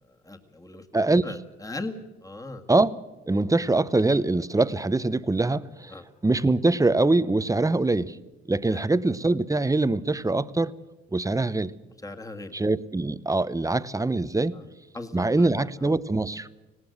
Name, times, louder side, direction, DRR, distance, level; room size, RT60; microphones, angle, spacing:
voice 1, 0.1-2.0 2.2-2.6 5.9-6.1 8.7-8.8 12.0-12.5 14.5-14.7 14.9-16.0, left 2 dB, 10° left, 5 dB, 1.9 m, -39 dB
voice 2, 3.3-5.9 6.2-8.2 8.5-10.7 11.1-11.7 12.5-14.6 15.1-16.5, right 2 dB, 10° right, 16 dB, 0.7 m, -23 dB
19.0 x 18.0 x 7.9 m, 1.1 s
cardioid pair, 90°, 30 cm